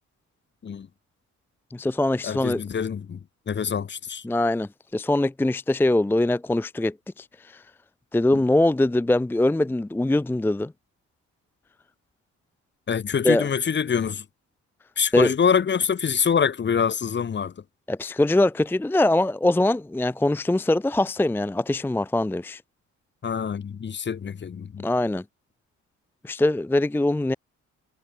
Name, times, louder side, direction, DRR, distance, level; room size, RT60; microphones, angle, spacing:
voice 1, 1.7-2.6 4.2-7.6 8.1-10.7 13.2-13.5 15.1-15.3 17.9-22.6 24.8-25.2 26.2-27.4, left 1 dB, 5° left, 0.6 m, -22 dB
voice 2, 2.2-4.2 12.9-14.2 15.0-17.5 23.2-24.8, left 7 dB, 35° left, 1.2 m, -25 dB
cardioid pair, 90°, 30 cm